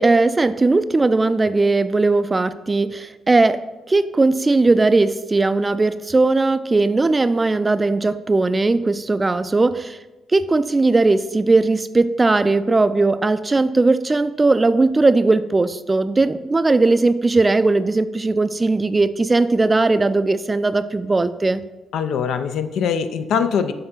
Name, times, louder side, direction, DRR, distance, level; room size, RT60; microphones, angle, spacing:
voice 1, 0.0-3.6 3.9-10.0 10.3-21.6, right 3 dB, 20° right, 13 dB, 0.3 m, -18 dB
voice 2, 21.9-23.7, left 7 dB, 75° left, 10 dB, 0.5 m, -22 dB
6.6 x 3.8 x 5.7 m, 1.1 s
cardioid pair, 90°, 0 cm